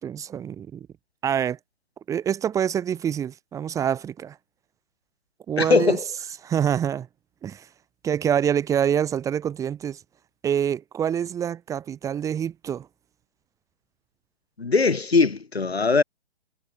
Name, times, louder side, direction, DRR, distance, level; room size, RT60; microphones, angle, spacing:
voice 1, 0.0-0.9 1.2-1.6 2.1-4.4 5.5-6.0 6.4-7.1 7.4-7.6 8.0-10.0 10.4-12.9, right 9 dB, 10° right, 2.5 m, -26 dB
voice 2, 5.6-6.0 14.6-16.0, left 4 dB, 65° left, 3.4 m, -20 dB
figure-of-eight pair, 135°, 33 cm